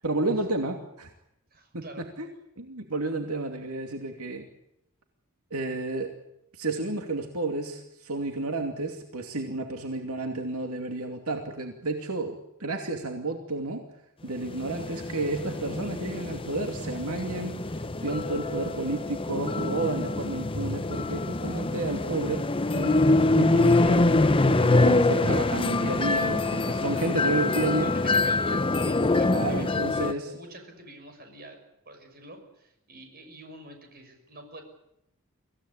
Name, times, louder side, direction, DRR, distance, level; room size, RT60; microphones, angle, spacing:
voice 1, 0.0-1.1 1.7-2.3 2.6-4.4 5.5-6.2 6.5-13.8 14.2-26.4 26.7-27.9 29.3-30.3, right 2 dB, 85° right, 4 dB, 2.6 m, -31 dB
voice 2, 1.5-2.0 26.1-26.5 27.8-31.6 31.8-34.6, right 1 dB, 45° right, 5 dB, 6.3 m, -46 dB
sound 1, 14.4-30.1, left 2 dB, 25° left, 0.9 m, -25 dB
25.0 x 16.5 x 10.0 m, 0.80 s
head